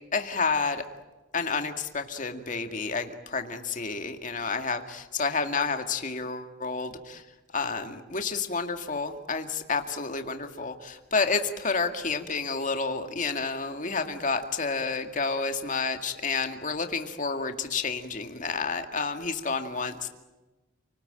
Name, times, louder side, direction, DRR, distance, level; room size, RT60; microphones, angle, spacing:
voice 1, 0.1-0.8 1.3-7.2 7.5-20.1, left 4 dB, 40° left, 6 dB, 2.1 m, -30 dB
29.5 x 19.5 x 9.0 m, 1.2 s
head